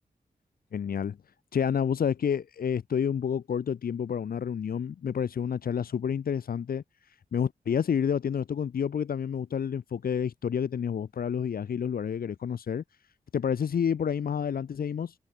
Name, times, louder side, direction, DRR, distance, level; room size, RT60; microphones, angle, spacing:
voice 1, 0.7-1.2 1.5-12.8 13.3-15.1, left 7 dB, 85° left, 1.5 m, -29 dB
wide cardioid pair, 120°, 15 cm